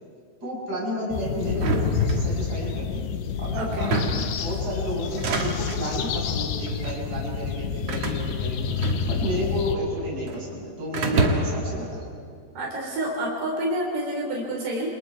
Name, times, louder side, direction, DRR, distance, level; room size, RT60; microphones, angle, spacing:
voice 1, 0.4-3.0 3.4-8.7 9.0-12.0, equal, 20° right, -4 dB, 6.8 m, -32 dB
sound 1, 1.1-9.8, left 6 dB, 75° left, 3.2 m, -28 dB
sound 2, 1.5-2.7 3.7-4.4 5.0-5.9 6.7-7.0 7.9-9.4 9.7-10.4 10.9-11.7, right 3 dB, 45° right, 2.6 m, -27 dB
voice 2, 3.6-4.0 12.6-14.9, right 1 dB, 70° right, -3 dB, 6.1 m, -28 dB
29.0 x 27.5 x 4.8 m, 2.4 s
omnidirectional pair, 4.8 m